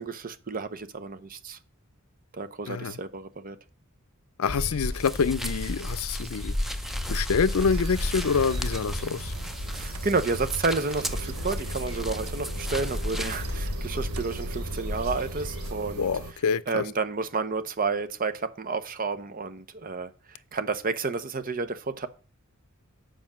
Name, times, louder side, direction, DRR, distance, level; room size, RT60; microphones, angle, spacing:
voice 1, 0.0-1.6 2.3-3.6 9.7-16.1 16.7-22.1, right 4 dB, 40° right, 0.7 m, -31 dB
voice 2, 4.4-6.5 7.1-9.3 16.0-16.8, left 5 dB, 85° left, 0.5 m, -26 dB
sound 1, 4.5-15.7, left 1 dB, 70° right, 3.9 m, -33 dB
sound 2, 5.0-13.4, equal, ahead, 0.5 m, -39 dB
sound 3, 7.6-16.3, right 3 dB, 90° right, 0.8 m, -40 dB
7.8 x 5.1 x 7.3 m
head